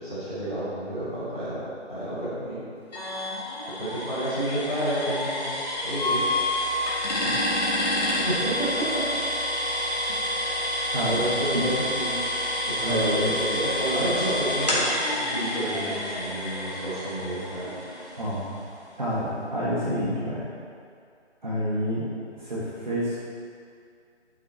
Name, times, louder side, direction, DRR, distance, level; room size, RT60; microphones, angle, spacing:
voice 1, 0.0-1.6 1.9-2.6 3.8-5.5 5.8-6.2 8.2-9.1 11.0-12.1 12.6-14.8 15.1-17.7, right 1 dB, 5° right, -17 dB, 1.9 m, -30 dB
sound 1, 2.9-18.6, left 1 dB, 35° left, 2.0 m, -28 dB
voice 2, 12.8-13.3 13.9-14.1 18.2-18.5 19.0-20.4 21.4-22.1 22.3-23.2, equal, 40° right, -9 dB, 1.8 m, -28 dB
11.5 x 6.0 x 4.3 m, 2.3 s
figure-of-eight pair, 175°, 35 cm